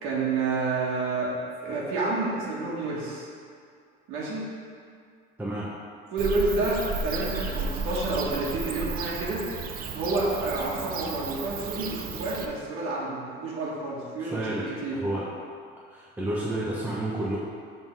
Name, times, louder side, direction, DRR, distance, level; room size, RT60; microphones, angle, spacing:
voice 1, 0.0-1.3 1.6-3.3 4.1-4.5 6.1-9.5 9.9-15.0, right 3 dB, 85° right, -5 dB, 1.6 m, -29 dB
Bird / Cricket, 6.2-12.5, right 4 dB, 45° right, 0.5 m, -33 dB
voice 2, 14.2-14.6 14.9-15.3 15.9-17.4, right 1 dB, 10° right, -6 dB, 0.8 m, -30 dB
7.8 x 3.8 x 4.6 m, 2.2 s
cardioid pair, 140°, 21 cm